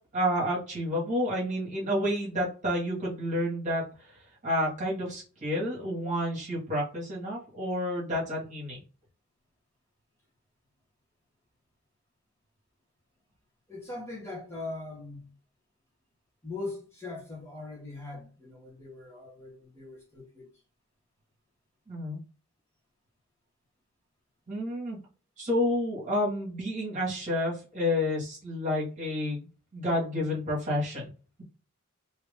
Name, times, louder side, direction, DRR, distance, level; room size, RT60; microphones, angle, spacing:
voice 1, 0.1-3.8 4.4-8.8 21.9-22.2 24.5-25.0 25.4-31.1, left 1 dB, 35° right, 1.5 m, -30 dB
voice 2, 13.7-15.3 16.4-20.5, left 2 dB, 10° left, 1.3 m, -40 dB
2.9 x 2.9 x 3.5 m
head